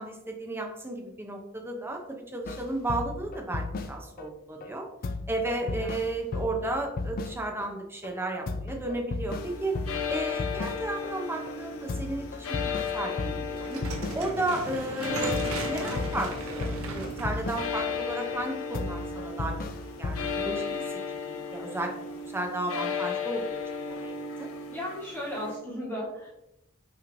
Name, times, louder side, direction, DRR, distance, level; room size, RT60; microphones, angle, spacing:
voice 1, 0.0-4.9 5.3-9.7 10.1-13.8 14.1-19.5 20.0-20.6 21.1-21.9 22.3-24.1 24.4-24.5, right 2 dB, 10° right, 2 dB, 0.6 m, -33 dB
sound 1, 2.4-4.3 4.6-4.7 5.0-7.7 8.0-8.1 8.5-11.1 11.5-11.6 11.9-14.6 14.9-15.0 15.3-18.0 18.3-18.4 18.7-20.6, left 3 dB, 45° left, 0.3 m, -35 dB
sound 2, 9.3-25.6, left 5 dB, 80° left, 0.7 m, -35 dB
sound 3, 13.6-18.7, right 2 dB, 75° right, 0.7 m, -38 dB
voice 2, 24.7-26.3, left 1 dB, 10° left, -7 dB, 1.4 m, -36 dB
5.7 x 3.1 x 2.6 m, 0.86 s
head